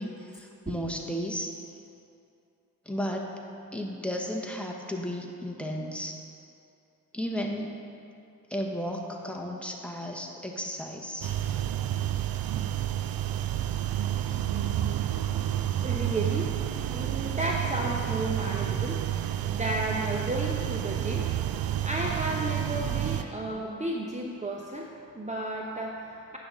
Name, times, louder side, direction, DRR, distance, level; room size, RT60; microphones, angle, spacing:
voice 1, 0.0-1.5 2.9-3.4 3.7-6.2 7.1-7.7 8.5-11.3 14.3-14.4, equal, 5° left, -1 dB, 1.3 m, -34 dB
sound 1, 11.2-23.2, right 11 dB, 65° right, 0.6 m, -30 dB
voice 2, 15.7-16.5 16.9-21.3 21.8-26.4, right 1 dB, 20° right, -1 dB, 0.9 m, -33 dB
9.3 x 4.1 x 6.7 m, 2.6 s
supercardioid pair, 55°, 38 cm